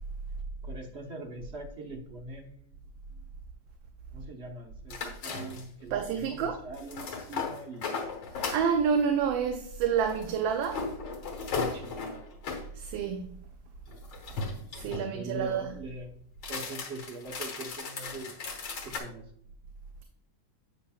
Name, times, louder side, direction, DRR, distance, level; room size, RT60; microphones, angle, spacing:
voice 1, 0.6-2.8 3.1-3.2 4.1-8.0 11.5-12.3 14.8-16.2 16.5-18.4 18.8-19.3, right 2 dB, 55° right, 0.7 m, -42 dB
sound 1, 4.9-5.8 6.7-8.7 10.0-12.7 13.9-15.1 16.3-19.0, left 4 dB, 65° left, 1.8 m, -36 dB
voice 2, 5.9-6.6 8.3-10.9 12.8-13.3 14.8-15.7, right 7 dB, 75° right, 1.3 m, -28 dB
8.3 x 5.7 x 2.3 m
omnidirectional pair, 2.2 m